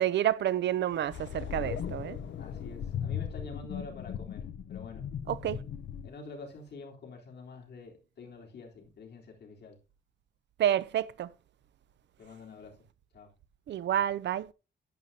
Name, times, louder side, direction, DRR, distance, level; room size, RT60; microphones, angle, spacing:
voice 1, 0.0-2.2 5.3-5.6 10.6-11.3 13.7-14.5, right 11 dB, 75° right, 0.6 m, -29 dB
sound 1, 1.1-6.1, left 8 dB, 90° left, 0.7 m, -37 dB
voice 2, 2.4-5.1 6.0-9.8 12.2-12.8 13.1-13.3, left 3 dB, 65° left, 3.7 m, -47 dB
11.0 x 9.9 x 2.8 m
wide cardioid pair, 135°, 19 cm